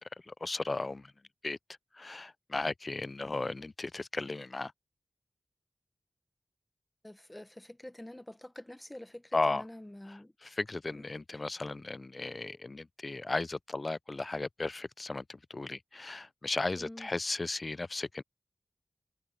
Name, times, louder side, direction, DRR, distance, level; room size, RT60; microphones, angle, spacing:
voice 1, 0.3-1.1 1.4-1.6 1.9-4.7 9.3-9.6 10.4-18.2, left 3 dB, 50° left, 0.5 m, -35 dB
voice 2, 7.0-10.3 10.9-11.4 16.8-17.1, left 1 dB, 20° left, 1.3 m, -47 dB
cardioid pair, 50°, 0 cm